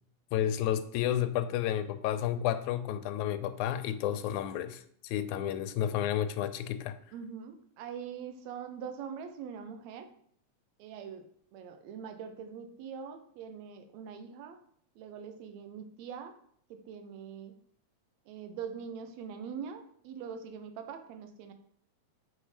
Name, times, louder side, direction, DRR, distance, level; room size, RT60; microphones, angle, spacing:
voice 1, 0.3-7.0, left 11 dB, 90° left, 11 dB, 2.0 m, -31 dB
voice 2, 7.1-10.1 10.8-11.2 11.5-14.6 15.0-16.3 16.7-17.5 18.3-21.5, right 7 dB, 75° right, 7 dB, 2.0 m, -43 dB
7.2 x 4.3 x 5.0 m, 0.64 s
omnidirectional pair, 3.4 m